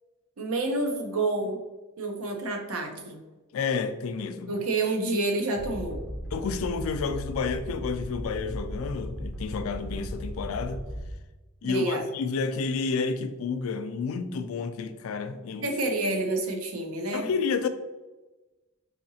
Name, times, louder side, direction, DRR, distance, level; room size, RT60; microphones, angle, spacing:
voice 1, 0.4-1.6 2.0-3.2 4.5-6.0 11.6-12.0 15.6-17.3, right 2 dB, 85° right, 0.7 m, -28 dB
voice 2, 3.5-4.5 6.3-10.8 11.6-15.7 17.1-17.7, left 5 dB, 75° left, 0.3 m, -30 dB
sound 1, 5.6-11.4, equal, 5° right, 0.4 m, -36 dB
4.2 x 2.7 x 2.7 m
head